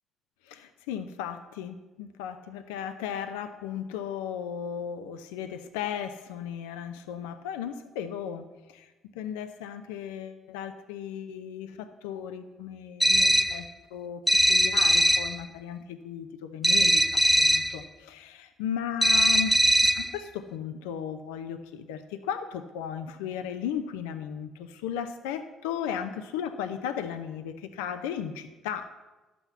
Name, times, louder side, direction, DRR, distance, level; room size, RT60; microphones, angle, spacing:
voice 1, 0.4-8.9 9.1-14.2 14.5-28.9, left 8 dB, 90° left, 9 dB, 0.6 m, -36 dB
sound 1, 13.0-13.6 14.3-15.4 16.6-17.8 19.0-20.1, equal, ahead, 0.5 m, -21 dB
11.5 x 6.1 x 8.1 m, 1.1 s
supercardioid pair, 65°, 0 cm